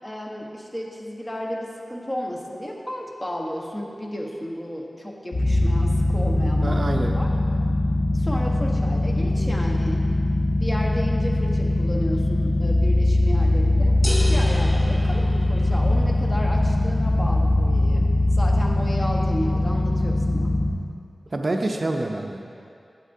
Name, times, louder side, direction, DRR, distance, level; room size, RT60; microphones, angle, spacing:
voice 1, 0.0-6.8 7.2-7.3 8.1-10.0 10.6-13.9 14.3-18.1 18.3-20.5, equal, 20° left, 0 dB, 1.1 m, -33 dB
sound 1, 5.3-20.7, left 1 dB, 50° left, 1.2 m, -21 dB
voice 2, 6.6-7.2 21.3-22.6, right 2 dB, 50° right, 3 dB, 0.5 m, -27 dB
sound 2, 14.0-16.1, equal, ahead, 0.7 m, -33 dB
11.5 x 8.2 x 2.7 m, 2.4 s
wide cardioid pair, 60°, 0 cm